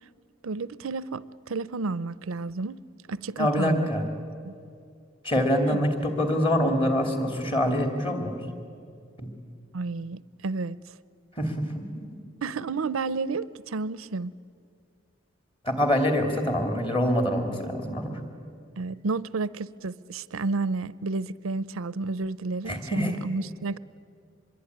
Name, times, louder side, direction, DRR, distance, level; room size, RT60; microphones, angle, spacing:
voice 1, 0.4-2.8 3.1-3.9 4.4-4.5 5.6-5.8 9.7-10.8 12.4-14.3 18.8-23.8, right 3 dB, 80° right, 0.6 m, -31 dB
voice 2, 3.4-4.1 5.2-8.5 9.2-9.3 11.4-12.0 15.6-18.2 22.7-23.2, equal, 25° left, 2.9 m, -25 dB
25.0 x 22.5 x 9.7 m
head